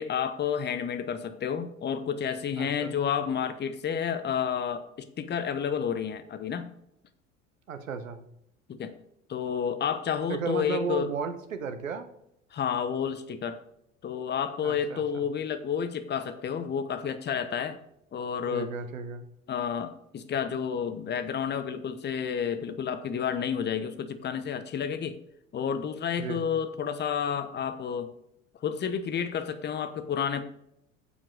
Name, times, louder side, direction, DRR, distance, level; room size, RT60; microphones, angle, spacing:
voice 1, 0.0-6.7 8.7-8.9 9.3-11.1 12.5-13.6 14.0-17.8 18.1-18.7 19.5-25.2 25.5-28.1 28.6-30.4, left 7 dB, 25° left, 11 dB, 0.9 m, -30 dB
voice 2, 2.6-2.9 7.7-8.2 10.3-12.1 14.6-15.0 18.5-19.2 26.2-26.4, right 6 dB, 85° right, 10 dB, 1.0 m, -34 dB
9.7 x 7.6 x 3.9 m, 0.76 s
figure-of-eight pair, 70°, 39 cm